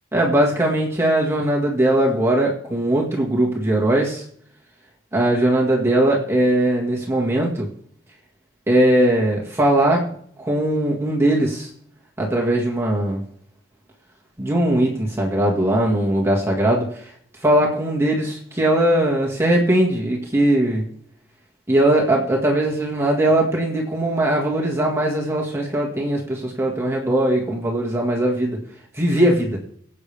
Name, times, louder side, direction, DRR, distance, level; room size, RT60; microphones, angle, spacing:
voice 1, 0.1-4.2 5.1-7.7 8.7-10.1 10.4-11.7 12.2-13.2 14.4-17.0 17.4-20.9 21.7-28.6 28.9-29.6, right 1 dB, 15° right, -2 dB, 1.9 m, -20 dB
23.0 x 8.5 x 3.5 m, 0.63 s
head